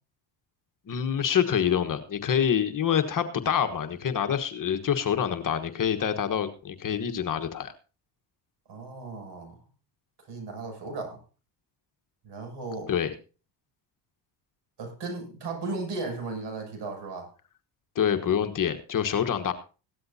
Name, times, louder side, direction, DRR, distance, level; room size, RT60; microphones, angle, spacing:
voice 1, 0.9-7.7 12.9-13.1 17.9-19.5, left 8 dB, 40° left, 8 dB, 1.3 m, -26 dB
voice 2, 8.7-9.6 10.3-11.2 12.2-12.9 14.8-17.3, right 3 dB, 60° right, 3 dB, 7.0 m, -36 dB
16.5 x 12.5 x 2.8 m, 0.35 s
supercardioid pair, 85°, 47 cm